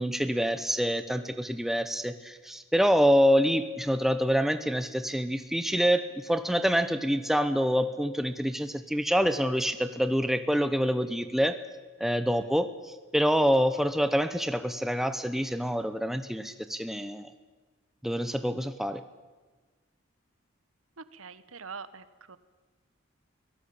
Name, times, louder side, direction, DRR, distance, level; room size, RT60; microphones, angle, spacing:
voice 1, 0.0-11.6 12.0-17.3 18.0-19.0, equal, ahead, 10 dB, 0.9 m, -26 dB
voice 2, 21.0-22.4, right 5 dB, 85° right, 14 dB, 1.2 m, -44 dB
23.5 x 17.5 x 8.7 m, 1.3 s
head